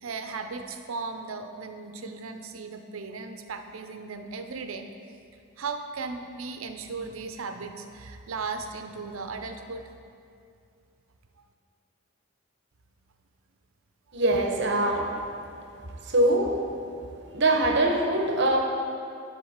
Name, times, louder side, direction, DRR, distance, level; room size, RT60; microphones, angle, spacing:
voice 1, 0.0-4.9 5.6-9.9, right 4 dB, 85° right, 6 dB, 0.6 m, -36 dB
voice 2, 14.1-15.2 16.0-16.6 17.3-18.6, right 1 dB, 55° right, 1 dB, 1.0 m, -23 dB
11.0 x 3.8 x 6.5 m, 2.4 s
head